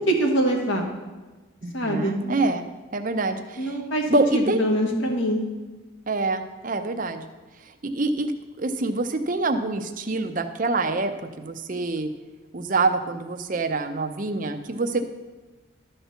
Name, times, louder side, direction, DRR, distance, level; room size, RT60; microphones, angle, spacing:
voice 1, 0.1-0.8 1.7-2.2 3.6-5.4, right 1 dB, 70° left, 2 dB, 1.7 m, -24 dB
voice 2, 1.6-2.7 2.9-3.8 4.1-4.6 6.1-7.2 7.8-8.3 8.6-12.1 12.5-15.1, right 3 dB, 40° right, 8 dB, 0.6 m, -26 dB
12.0 x 4.4 x 6.9 m, 1.2 s
head